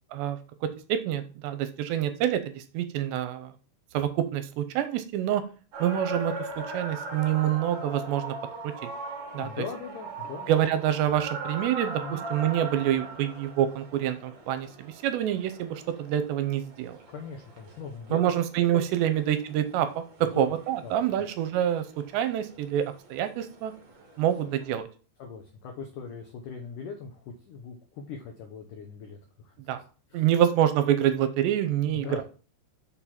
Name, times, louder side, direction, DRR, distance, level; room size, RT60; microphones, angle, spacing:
voice 1, 0.1-3.5 3.9-5.4 5.8-8.3 8.6-8.9 9.3-9.5 10.5-17.0 18.1-23.7 24.2-24.9 29.7-29.8 30.1-32.2, right 11 dB, 80° right, 10 dB, 2.8 m, -27 dB
sound 1, 5.7-24.8, right 2 dB, 45° right, 2.3 m, -40 dB
voice 2, 9.4-10.5 12.0-12.2 17.1-18.3 18.7-19.2 20.2-20.5 20.8-21.3 24.4-24.5 25.2-29.5 30.1-30.3 31.9-32.2, left 5 dB, 85° left, 3 dB, 1.8 m, -40 dB
7.0 x 4.7 x 5.7 m, 0.37 s
omnidirectional pair, 5.2 m